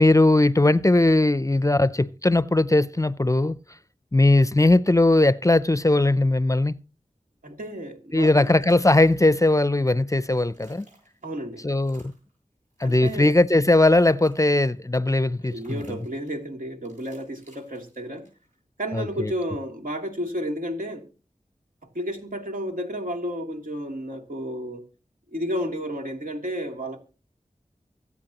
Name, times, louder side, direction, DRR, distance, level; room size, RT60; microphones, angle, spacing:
voice 1, 0.0-3.6 4.1-6.7 8.1-10.9 11.6-12.0 12.8-16.0 18.9-19.3, left 2 dB, 25° left, 0.5 m, -19 dB
voice 2, 7.4-8.6 11.2-11.6 12.8-13.4 15.5-18.3 18.8-21.0 21.9-24.8 25.3-27.0, equal, 80° right, 2.8 m, -32 dB
sound 1, 8.2-9.8 10.1-11.4 11.7-12.3 12.7-13.7 14.0-14.8 15.6-16.4 16.8-18.5, right 1 dB, 60° right, 7.5 m, -58 dB
24.0 x 8.3 x 2.9 m
wide cardioid pair, 55°, 14 cm